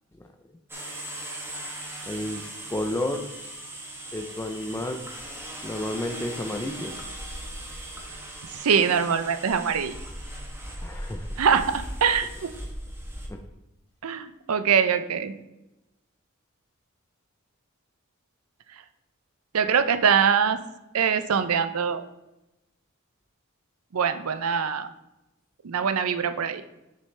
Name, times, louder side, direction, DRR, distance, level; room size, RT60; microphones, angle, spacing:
sound 1, 0.7-13.3, right 1 dB, 10° right, 1.0 m, -38 dB
voice 1, 2.1-2.4 2.7-3.2 4.1-5.0 5.6-7.0 10.8-11.3 13.3-13.4, left 1 dB, 15° left, 3 dB, 0.5 m, -31 dB
voice 2, 8.5-9.9 11.4-12.5 14.0-15.3 19.5-20.6 20.9-22.1 23.9-24.9 25.6-26.6, right 7 dB, 85° right, 10 dB, 0.5 m, -23 dB
6.6 x 6.5 x 3.3 m, 0.95 s
head